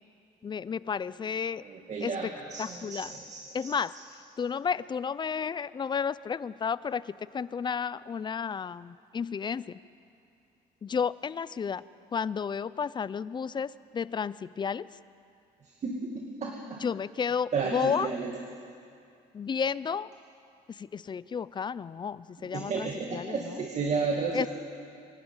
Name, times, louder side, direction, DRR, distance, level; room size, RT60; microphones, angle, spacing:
voice 1, 0.4-1.6 2.0-2.3 2.6-3.1 3.5-3.9 4.4-9.8 10.8-11.8 12.1-14.9 16.8-18.1 19.3-20.1 20.7-23.6 24.3-24.5, left 6 dB, 25° left, 18 dB, 0.4 m, -32 dB
voice 2, 1.6-3.7 15.8-16.8 17.5-18.3 22.5-24.5, right 4 dB, 40° right, 1 dB, 2.1 m, -33 dB
24.5 x 12.0 x 9.0 m, 2.5 s
cardioid pair, 110°, 17 cm